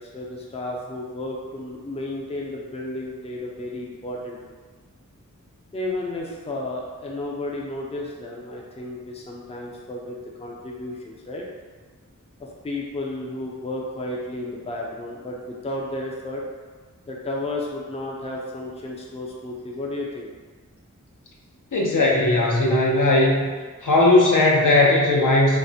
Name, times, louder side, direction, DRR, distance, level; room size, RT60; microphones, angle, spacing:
voice 1, 0.0-4.4 5.7-11.5 12.4-16.4 17.1-20.3, left 1 dB, 20° left, -2 dB, 0.4 m, -32 dB
voice 2, 21.7-23.5 23.8-25.6, left 2 dB, 70° left, -2 dB, 0.6 m, -18 dB
3.2 x 2.1 x 2.6 m, 1.4 s
wide cardioid pair, 65°, 33 cm